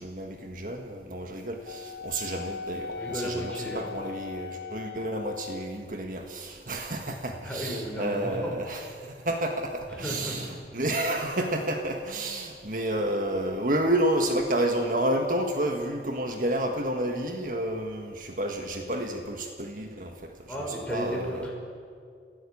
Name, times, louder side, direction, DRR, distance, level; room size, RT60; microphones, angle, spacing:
voice 1, 0.0-20.5 20.9-21.5, right 1 dB, 50° right, 4 dB, 1.7 m, -30 dB
Wind instrument woodwind instrument, 1.7-5.8, left 6 dB, 65° left, 1.2 m, -39 dB
voice 2, 3.0-3.9 7.3-8.5 9.9-10.4 20.5-21.5, equal, 5° left, -2 dB, 5.7 m, -34 dB
29.0 x 15.5 x 8.6 m, 2.2 s
head